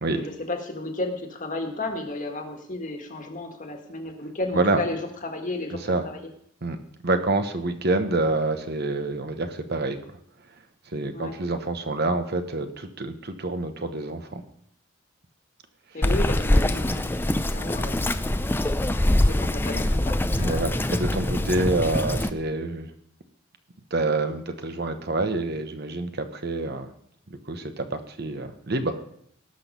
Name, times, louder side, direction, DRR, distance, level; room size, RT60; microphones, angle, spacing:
voice 1, 0.1-5.8 6.0-6.2 11.1-11.3 15.9-18.0 19.2-20.7, left 2 dB, 40° left, 4 dB, 1.7 m, -33 dB
voice 2, 7.0-10.0 10.9-14.4 20.4-22.9 23.9-26.9 27.3-29.0, right 2 dB, 55° right, 8 dB, 1.0 m, -27 dB
Bird vocalization bird call bird song, 16.0-22.3, left 1 dB, 10° left, 0.4 m, -24 dB
18.5 x 6.2 x 5.3 m, 0.69 s
head